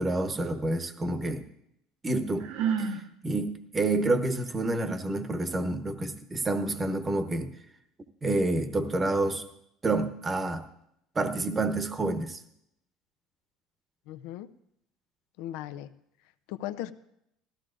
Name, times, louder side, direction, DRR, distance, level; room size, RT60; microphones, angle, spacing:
voice 1, 0.0-1.4 2.0-2.5 3.2-7.5 8.2-9.4 9.8-10.6 11.1-12.4, right 2 dB, 15° right, 8 dB, 0.9 m, -28 dB
Sigh, 2.4-3.0, right 7 dB, 80° right, 1.2 m, -29 dB
voice 2, 14.1-14.5 15.4-15.9 16.5-16.9, left 13 dB, 75° left, 11 dB, 0.5 m, -37 dB
19.0 x 14.0 x 2.5 m, 0.77 s
cardioid pair, 155°, 0 cm